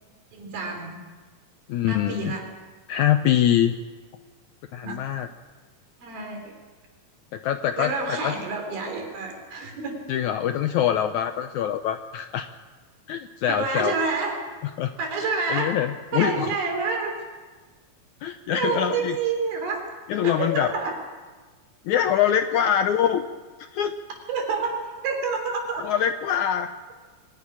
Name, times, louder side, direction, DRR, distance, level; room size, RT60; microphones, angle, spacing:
voice 1, 0.3-1.1 1.8-2.5 4.8-5.0 6.0-6.6 7.8-10.0 13.5-14.5 15.0-15.8 16.1-17.2 18.6-19.9 20.2-21.0 24.3-25.9, right 4 dB, 80° right, 3 dB, 5.3 m, -28 dB
voice 2, 1.7-2.3 2.9-3.7 4.7-5.3 7.3-8.3 10.1-12.5 13.1-13.9 14.8-14.9 15.2-16.5 18.2-19.2 20.1-20.7 21.8-23.2 23.6-24.0 25.8-26.7, left 10 dB, 80° left, 8 dB, 1.7 m, -24 dB
23.5 x 11.5 x 10.0 m, 1.4 s
omnidirectional pair, 4.2 m